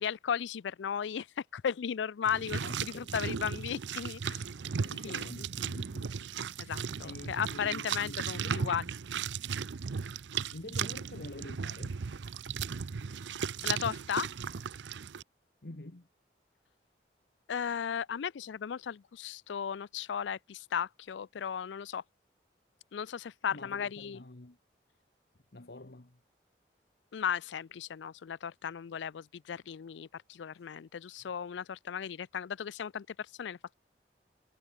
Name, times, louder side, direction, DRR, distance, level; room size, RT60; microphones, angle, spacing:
voice 1, 0.0-4.4 5.0-5.3 6.6-8.9 13.6-14.3 17.5-22.0 22.9-24.2 27.1-33.7, left 7 dB, 85° left, 0.4 m, -36 dB
sound 1, 2.3-15.2, right 6 dB, 85° right, 0.5 m, -36 dB
voice 2, 2.6-3.1 4.8-6.3 7.0-8.6 10.5-12.0 15.6-16.1 23.5-24.6 25.5-26.2, left 2 dB, 65° left, 1.4 m, -47 dB
head